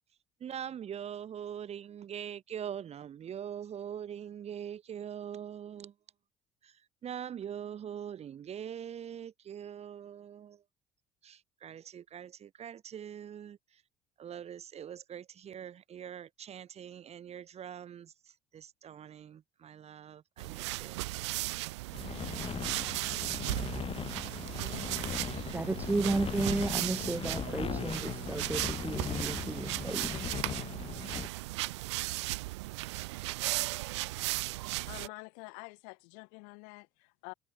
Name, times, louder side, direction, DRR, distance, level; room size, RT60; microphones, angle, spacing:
voice 1, 0.4-5.9 6.6-10.6 11.2-13.8 14.2-21.0, right 9 dB, 50° right, 2.0 m, -43 dB
sound 1, 20.4-35.1, right 20 dB, 85° right, 0.5 m, -36 dB
sound 2, 21.9-31.3, left 7 dB, 40° left, 3.6 m, -39 dB
voice 2, 25.5-30.1, right 2 dB, 10° right, 0.5 m, -33 dB
voice 3, 34.9-37.3, left 39 dB, 75° left, 3.4 m, -47 dB
hypercardioid pair, 60°, 14 cm